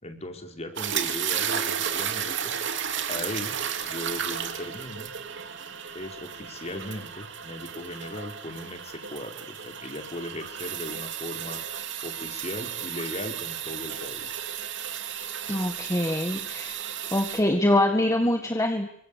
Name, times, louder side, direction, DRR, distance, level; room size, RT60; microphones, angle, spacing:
voice 1, 0.0-2.5 3.1-3.6 3.8-5.1 5.9-11.6 12.0-14.5, left 1 dB, 35° left, 5 dB, 4.6 m, -38 dB
sound 1, 0.8-17.4, right 8 dB, 65° right, 3.1 m, -33 dB
voice 2, 15.5-16.7 17.1-18.9, left 1 dB, 15° left, 5 dB, 1.8 m, -24 dB
27.5 x 24.5 x 8.6 m, 0.68 s
head